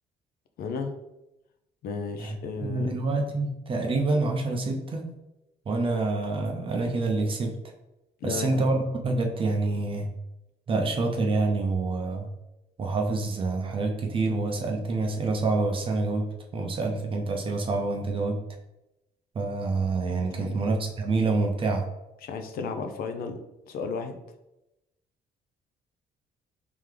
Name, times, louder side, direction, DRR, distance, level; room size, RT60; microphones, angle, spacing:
voice 1, 0.6-0.9 1.8-3.0 8.2-8.7 20.4-20.6 22.2-23.4 23.7-24.2, left 5 dB, 60° left, 6 dB, 0.5 m, -33 dB
voice 2, 2.6-5.1 5.7-7.6 8.2-10.1 10.7-12.3 12.8-16.3 16.5-18.4 19.3-21.8, right 3 dB, 30° right, 2 dB, 0.6 m, -27 dB
3.7 x 3.4 x 3.2 m, 0.94 s
cardioid pair, 160°, 17 cm